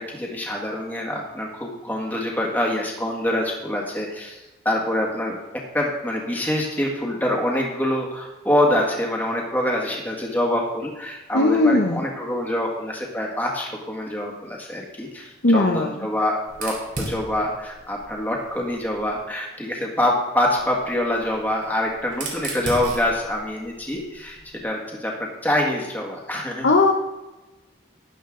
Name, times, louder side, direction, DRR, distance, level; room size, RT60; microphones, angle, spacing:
voice 1, 0.1-5.4 5.7-26.7, left 1 dB, 10° left, -1 dB, 1.7 m, -25 dB
voice 2, 11.3-12.0 15.4-15.9 26.6-26.9, left 2 dB, 75° left, 1 dB, 0.9 m, -17 dB
Fire, 16.5-19.2 20.4-24.6, right 2 dB, 45° right, 2.9 m, -37 dB
12.0 x 11.0 x 3.8 m, 1.1 s
head